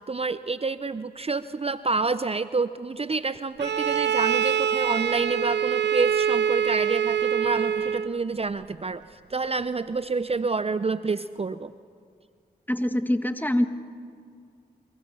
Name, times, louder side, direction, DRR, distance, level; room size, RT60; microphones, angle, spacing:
voice 1, 0.0-11.7, right 4 dB, 35° right, 14 dB, 0.6 m, -28 dB
Bowed string instrument, 3.6-8.2, right 8 dB, 75° right, 0.5 m, -25 dB
voice 2, 12.7-13.7, left 1 dB, 10° left, 9 dB, 1.5 m, -24 dB
23.5 x 23.5 x 6.2 m, 2.2 s
cardioid pair, 40°, 18 cm